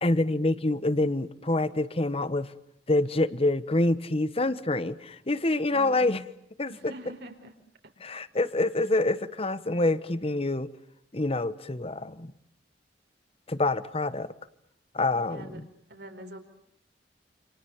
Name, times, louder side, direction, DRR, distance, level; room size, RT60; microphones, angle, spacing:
voice 1, 0.0-2.5 2.9-6.2 6.6-6.7 8.0-10.7 11.1-12.3 13.5-14.3 14.9-15.6, left 2 dB, 35° left, 14 dB, 1.2 m, -26 dB
voice 2, 5.7-6.1 6.7-7.5 7.8-7.9 15.1-15.6 15.9-16.4, right 1 dB, 65° right, 6 dB, 4.6 m, -44 dB
29.0 x 27.5 x 7.3 m, 0.74 s
head